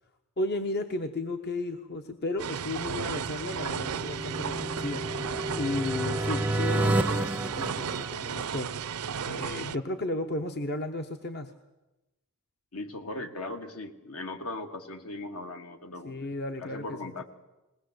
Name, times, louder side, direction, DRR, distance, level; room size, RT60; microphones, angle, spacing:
voice 1, 0.4-8.7 9.2-11.5 16.0-17.2, left 2 dB, 50° left, 6 dB, 1.0 m, -34 dB
sound 1, 2.4-9.8, right 7 dB, 75° right, 0.6 m, -34 dB
sound 2, 3.1-8.7, right 1 dB, 5° right, 0.6 m, -31 dB
voice 2, 12.7-16.2 16.6-17.2, left 2 dB, 70° left, 6 dB, 1.9 m, -38 dB
20.5 x 19.0 x 7.9 m, 1.0 s
head